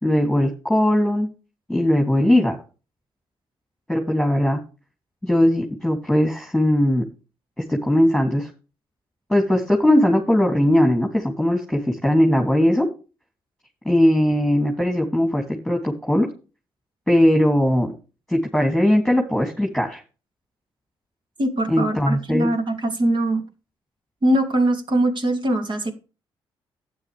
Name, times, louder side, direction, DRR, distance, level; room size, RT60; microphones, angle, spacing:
voice 1, 0.0-1.3 1.7-2.6 3.9-4.6 5.2-7.0 7.6-8.5 9.3-12.9 13.8-16.3 17.1-17.9 18.3-20.0 21.7-22.5, left 1 dB, ahead, 2.9 m, -19 dB
voice 2, 21.4-23.4 24.2-25.9, right 1 dB, 45° right, 3.0 m, -22 dB
12.0 x 9.5 x 3.5 m
supercardioid pair, 50°, 11 cm